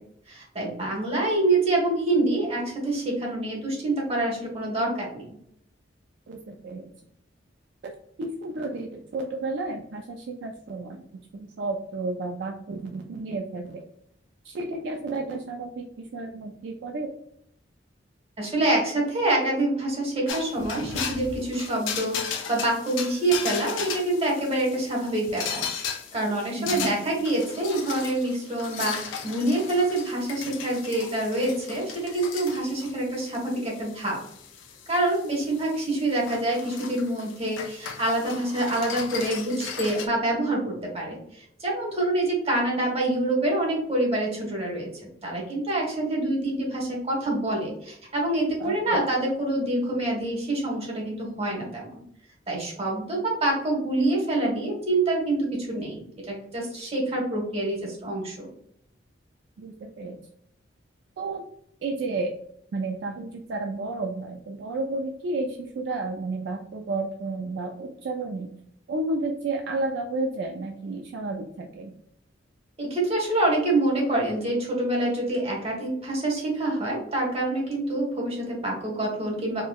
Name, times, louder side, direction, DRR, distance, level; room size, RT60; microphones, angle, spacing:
voice 1, 0.3-5.2 18.4-34.2 34.9-44.9 45.2-51.9 52.5-58.5 72.8-79.6, right 2 dB, 35° right, -2 dB, 1.2 m, -26 dB
voice 2, 6.3-6.9 7.8-7.9 8.2-11.0 11.3-13.8 14.4-15.8 16.1-17.1 26.6-27.0 48.6-49.1 59.6-60.2 61.2-61.4 61.8-62.3 62.7-68.5 68.9-71.9, right 2 dB, 65° right, 2 dB, 0.3 m, -32 dB
sound 1, 20.3-40.1, left 6 dB, 80° left, 0.4 m, -36 dB
4.3 x 2.0 x 2.2 m, 0.71 s
head